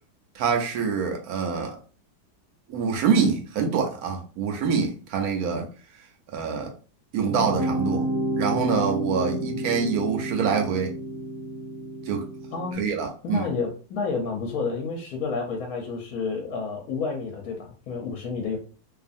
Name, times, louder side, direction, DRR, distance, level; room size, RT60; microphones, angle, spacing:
voice 1, 0.3-1.8 2.7-5.7 6.3-6.7 7.1-8.1 8.4-10.9 12.1-12.3 12.8-13.5, right 6 dB, 70° right, 1.0 m, -25 dB
sound 1, 7.2-12.7, right 1 dB, 30° left, 0.4 m, -30 dB
voice 2, 12.5-12.9 13.2-18.6, left 4 dB, 70° left, 1.0 m, -30 dB
2.6 x 2.4 x 2.5 m
omnidirectional pair, 1.9 m